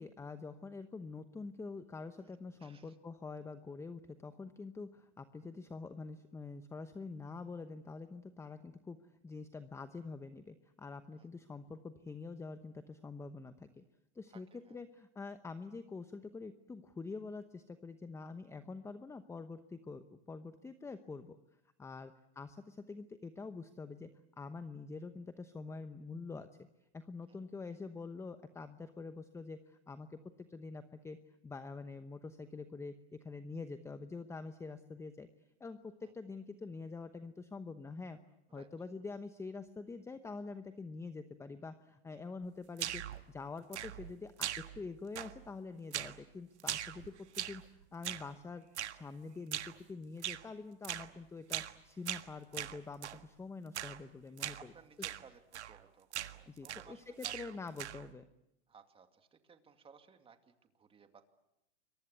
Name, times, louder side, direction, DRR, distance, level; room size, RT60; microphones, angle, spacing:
voice 1, 0.0-13.8 14.1-21.4 21.8-24.1 24.4-26.5 26.9-35.3 35.6-38.2 38.5-43.0 43.3-48.6 48.9-54.7 56.5-58.2, left 4 dB, 10° left, 10 dB, 0.9 m, -46 dB
voice 2, 2.6-3.0 11.2-11.3 14.3-14.8 27.3-27.4 36.0-36.1 38.5-38.7 42.1-42.2 54.4-57.4 58.7-61.3, right 6 dB, 15° right, 7 dB, 2.4 m, -60 dB
sound 1, 42.8-43.2 43.7-44.1 44.4-44.9 45.2-45.5 45.9-46.2 46.6-47.7 48.0-48.3 48.8-49.0 49.5-49.8 50.2-50.5 50.8-51.1 51.5-51.8 52.1-53.2 53.7-54.0 54.4-54.6 55.0-55.2 55.5-55.8 56.1-56.9 57.2-58.1, right 11 dB, 80° right, 1.6 m, -41 dB
29.0 x 23.5 x 8.2 m, 0.88 s
hypercardioid pair, 125°, 34 cm